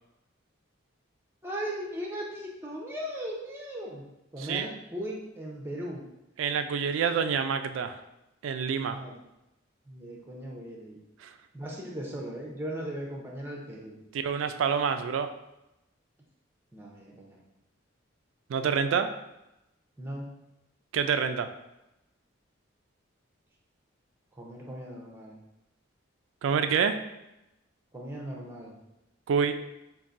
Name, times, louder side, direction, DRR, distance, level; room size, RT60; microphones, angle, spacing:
voice 1, 1.4-4.1 4.3-6.0 8.9-9.1 9.9-11.0 11.5-14.0 16.7-17.4 20.0-20.3 24.3-25.4 27.9-28.7, equal, 10° right, -2 dB, 0.6 m, -38 dB
voice 2, 6.4-8.0 8.4-9.0 11.2-11.3 14.1-15.3 18.5-19.1 20.9-21.5 26.4-27.0 29.3-29.5, right 6 dB, 70° right, 9 dB, 0.3 m, -27 dB
5.3 x 2.6 x 2.5 m, 0.92 s
head